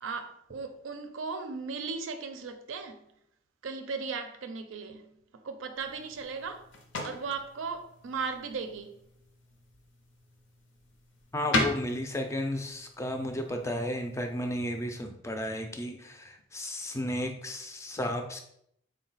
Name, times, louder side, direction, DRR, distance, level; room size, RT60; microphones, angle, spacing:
voice 1, 0.0-3.0 3.6-5.1 5.4-6.7 7.0-8.9, right 5 dB, 90° right, 0.4 m, -37 dB
sound 1, 5.7-14.9, left 2 dB, 75° left, 0.6 m, -38 dB
voice 2, 11.3-18.4, left 1 dB, 15° left, 0.3 m, -33 dB
3.9 x 2.2 x 3.9 m
head